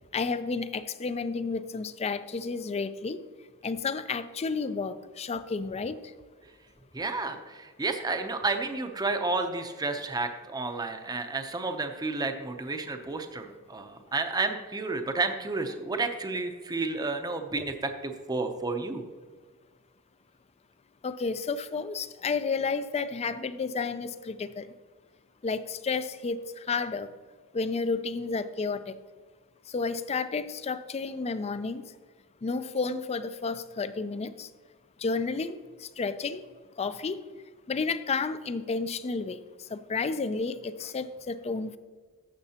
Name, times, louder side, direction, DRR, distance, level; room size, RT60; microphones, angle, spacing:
voice 1, 0.1-3.2 3.6-5.9 21.0-24.7 25.4-27.1 27.5-28.9 29.7-31.8 32.4-34.5 35.0-36.4 36.8-37.2 37.7-39.4 39.7-41.8, left 4 dB, 30° left, 13 dB, 0.4 m, -31 dB
voice 2, 6.9-19.0, right 3 dB, 20° right, 6 dB, 0.6 m, -31 dB
12.0 x 7.2 x 2.8 m, 1.4 s
head